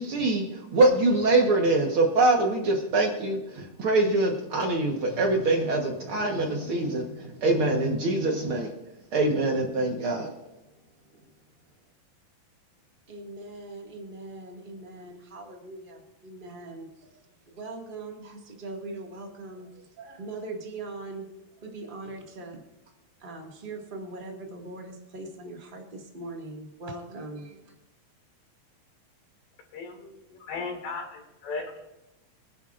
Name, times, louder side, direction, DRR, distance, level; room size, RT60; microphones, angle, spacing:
voice 1, 0.0-8.7 9.1-10.3, right 2 dB, 60° right, 2 dB, 1.5 m, -24 dB
voice 2, 13.1-21.3 21.6-22.6 23.2-27.7, right 2 dB, 25° right, 1 dB, 1.2 m, -41 dB
voice 3, 29.7-30.1 30.4-31.7, left 4 dB, 85° left, 2 dB, 4.2 m, -35 dB
24.5 x 10.5 x 2.5 m, 0.96 s
omnidirectional pair, 4.1 m